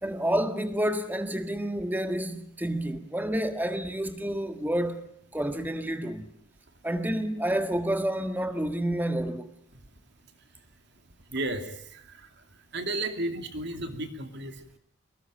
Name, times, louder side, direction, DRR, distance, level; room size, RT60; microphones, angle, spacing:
voice 1, 0.0-5.1 5.3-6.2 6.8-9.5, right 1 dB, 10° right, 1.7 m, -29 dB
voice 2, 11.3-12.0 12.7-14.5, right 2 dB, 55° right, 2.8 m, -33 dB
24.0 x 19.5 x 9.1 m
head